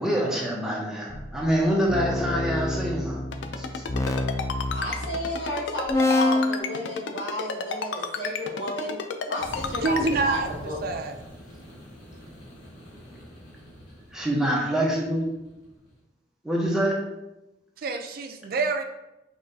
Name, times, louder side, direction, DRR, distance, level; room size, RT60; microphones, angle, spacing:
voice 1, 0.0-3.2 3.6-3.8 14.1-15.2 16.4-17.0, right 1 dB, 5° right, -4 dB, 0.9 m, -25 dB
sound 1, 1.1-5.5 5.9-6.6, left 2 dB, 15° left, 0.4 m, -27 dB
Ringtone, 3.3-10.1, left 5 dB, 90° left, 0.4 m, -31 dB
voice 2, 4.7-9.0 9.3-10.8, left 1 dB, 70° left, -4 dB, 1.4 m, -32 dB
sound 2, 9.4-16.0, equal, 50° left, 1.5 m, -43 dB
voice 3, 9.6-10.5 10.8-11.2 17.8-18.8, right 3 dB, 55° right, 6 dB, 0.4 m, -27 dB
5.5 x 3.1 x 2.7 m, 0.95 s
head